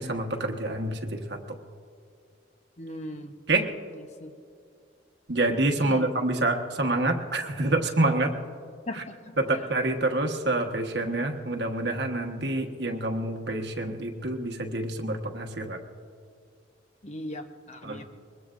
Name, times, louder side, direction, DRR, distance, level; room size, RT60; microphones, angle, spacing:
voice 1, 0.0-1.4 3.5-3.7 5.3-8.3 8.9-9.0 9.4-15.8 17.8-18.0, right 2 dB, 65° right, 4 dB, 1.3 m, -27 dB
voice 2, 2.8-3.3 4.2-4.3 5.8-6.1 8.9-9.6 17.0-18.0, left 1 dB, 35° left, 6 dB, 0.9 m, -39 dB
23.5 x 21.5 x 2.6 m, 2.3 s
head